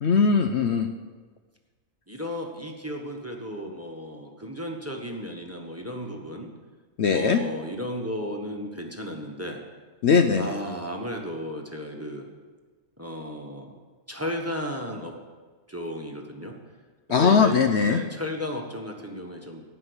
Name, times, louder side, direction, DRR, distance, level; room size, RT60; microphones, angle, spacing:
voice 1, 0.0-0.9 7.0-7.4 10.0-10.5 17.1-18.0, left 5 dB, 60° left, 6 dB, 0.9 m, -20 dB
voice 2, 2.1-6.5 7.1-9.6 10.3-12.3 13.0-13.8 14.1-15.2 15.7-16.6 17.1-17.5 17.8-19.6, equal, 10° right, 2 dB, 1.2 m, -34 dB
16.5 x 5.5 x 8.0 m, 1.4 s
omnidirectional pair, 1.4 m